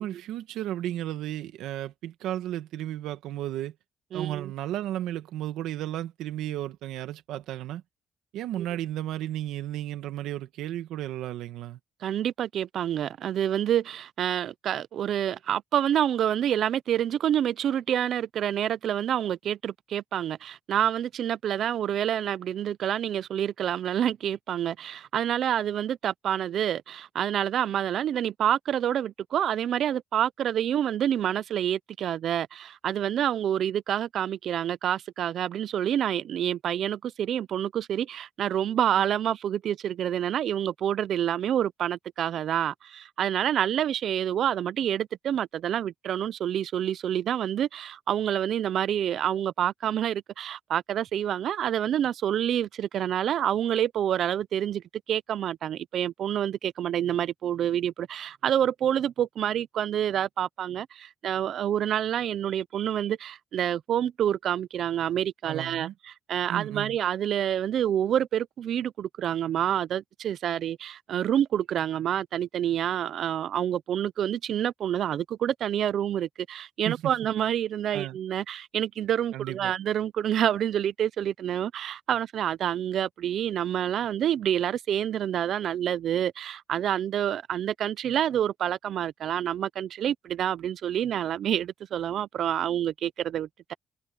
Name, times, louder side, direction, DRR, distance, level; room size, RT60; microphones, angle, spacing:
voice 1, 0.0-3.7 4.1-7.8 8.3-11.8 65.4-65.9 66.5-67.0 76.8-77.2 77.9-78.2 79.3-79.7, right 13 dB, 90° right, 1.6 m, -34 dB
voice 2, 4.1-4.5 8.6-8.7 12.0-93.7, right 10 dB, 70° right, 0.5 m, -28 dB
cardioid pair, 90°, 0 cm